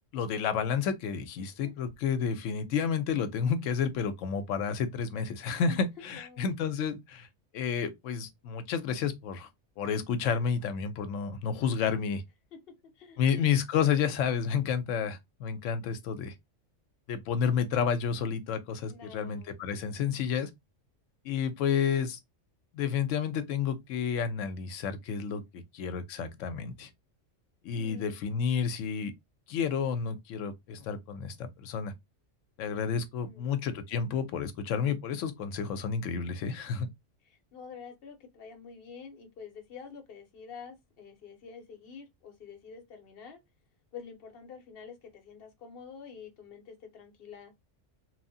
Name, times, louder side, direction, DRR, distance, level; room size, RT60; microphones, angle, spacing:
voice 1, 0.1-7.3 7.5-9.5 9.8-12.2 13.2-16.3 17.1-20.5 21.2-22.2 22.7-26.9 27.6-29.1 29.5-31.9 32.6-36.9, left 7 dB, 90° left, 0.9 m, -30 dB
voice 2, 1.4-1.7 5.7-6.5 12.5-13.2 18.8-19.5 25.5-25.6 27.8-28.2 33.2-33.5 37.2-43.4 43.9-47.5, left 6 dB, 55° left, 0.9 m, -48 dB
2.9 x 2.1 x 2.6 m
omnidirectional pair, 1.3 m